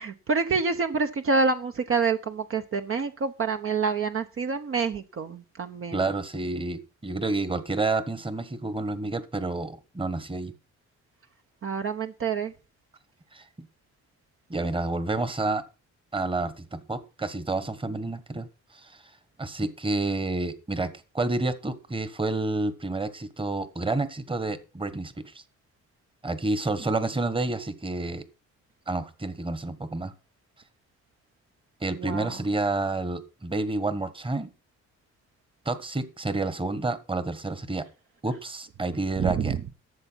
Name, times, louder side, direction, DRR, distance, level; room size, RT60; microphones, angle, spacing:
voice 1, 0.0-6.0 11.6-12.5 32.0-32.3 39.2-39.5, right 4 dB, 45° right, 6 dB, 1.1 m, -27 dB
voice 2, 5.9-10.5 13.3-13.7 14.5-15.6 16.1-18.5 18.7-19.0 19.4-25.4 26.2-28.3 28.9-30.1 31.8-34.5 35.6-37.8 38.2-39.5, right 2 dB, 15° right, 13 dB, 1.4 m, -29 dB
13.0 x 7.0 x 5.8 m, 0.32 s
cardioid pair, 90°, 30 cm